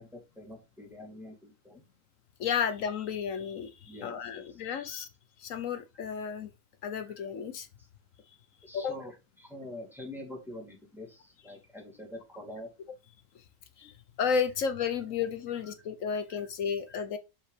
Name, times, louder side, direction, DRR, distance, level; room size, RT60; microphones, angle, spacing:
voice 1, 0.0-1.8 3.3-3.4 3.9-4.6 4.9-5.0 6.2-6.3 7.1-7.2 7.8-7.9 8.6-12.7 15.6-15.7 16.3-16.5, left 1 dB, ahead, 2.6 m, -46 dB
voice 2, 2.4-5.1 5.4-6.5 6.8-7.7 8.7-8.9 13.8-13.9 14.2-17.2, left 6 dB, 60° left, 0.9 m, -32 dB
6.5 x 5.5 x 3.3 m
omnidirectional pair, 2.0 m